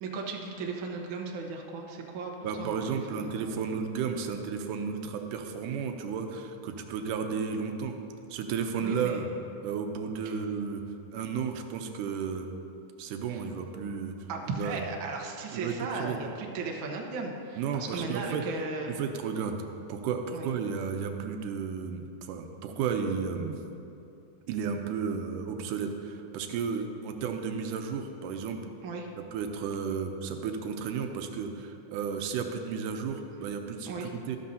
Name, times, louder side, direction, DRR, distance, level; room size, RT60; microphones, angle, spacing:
voice 1, 0.0-2.3 2.6-2.8 3.1-3.5 8.8-9.3 10.2-10.3 13.3-13.4 14.3-19.0 20.3-20.5 28.8-29.1 33.9-34.1, right 4 dB, 65° right, 1 dB, 1.2 m, -36 dB
voice 2, 2.4-8.0 8.3-9.3 9.6-10.8 11.1-12.5 13.0-14.1 14.6-14.8 15.5-16.2 17.6-18.4 18.9-19.6 19.9-23.6 24.5-28.6 29.3-34.4, right 6 dB, 90° right, 5 dB, 2.2 m, -33 dB
13.0 x 12.5 x 2.7 m, 2.7 s
omnidirectional pair, 3.7 m